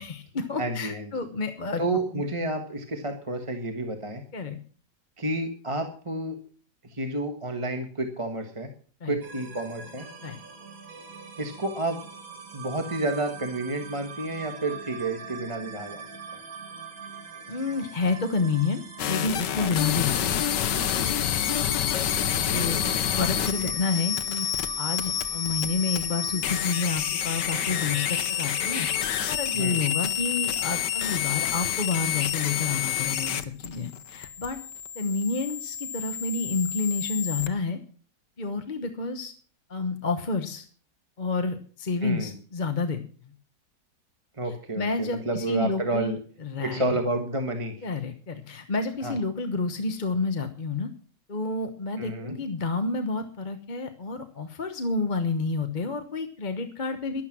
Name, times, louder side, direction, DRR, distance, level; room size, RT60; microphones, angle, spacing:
voice 1, 0.0-1.8 2.2-2.3 4.3-4.6 9.0-9.2 10.2-10.4 17.5-21.3 22.5-22.8 23.1-28.9 29.3-34.6 34.9-37.8 38.4-39.3 39.7-40.7 41.2-43.0 44.7-47.0 47.8-50.9 51.3-57.2, left 4 dB, 30° left, 6 dB, 1.0 m, -29 dB
voice 2, 0.6-1.1 1.8-4.2 5.2-6.4 6.9-8.7 9.0-10.1 11.4-12.0 12.5-16.0 16.3-16.4 19.6-19.7 22.5-23.7 29.5-29.8 42.0-42.3 44.4-46.2 46.6-47.9 49.0-49.2 52.0-52.3, right 2 dB, 20° right, 5 dB, 1.3 m, -30 dB
sound 1, 9.2-29.1, right 5 dB, 50° right, 2.4 m, -43 dB
sound 2, 19.0-37.5, left 10 dB, 80° left, 1.5 m, -28 dB
12.0 x 12.0 x 6.1 m, 0.43 s
omnidirectional pair, 1.9 m